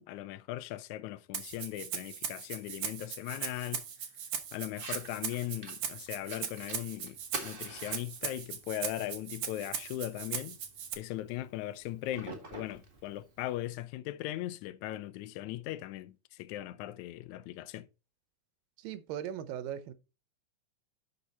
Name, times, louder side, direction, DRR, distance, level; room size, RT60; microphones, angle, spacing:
voice 1, 0.0-3.9 4.5-10.6 11.0-17.9, left 14 dB, 75° left, 1.9 m, -39 dB
Rattle (instrument), 1.3-10.9, right 8 dB, 60° right, 1.2 m, -39 dB
Fire, 4.7-13.7, right 2 dB, 25° right, 1.3 m, -49 dB
voice 2, 18.8-19.9, right 10 dB, 90° right, 2.5 m, -38 dB
12.0 x 4.9 x 4.1 m
omnidirectional pair, 3.8 m